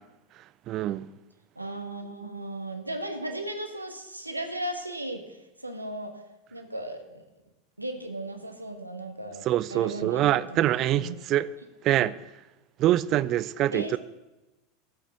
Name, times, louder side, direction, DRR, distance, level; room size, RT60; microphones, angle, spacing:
voice 1, 0.7-1.1 9.5-11.5 11.8-12.1 12.8-14.0, right 13 dB, 40° right, 0.5 m, -24 dB
voice 2, 1.6-6.2 6.5-7.2 7.8-11.2 11.9-12.2 13.7-14.0, right 1 dB, 90° right, 1.3 m, -36 dB
13.5 x 5.9 x 8.1 m
figure-of-eight pair, 80°, 0 cm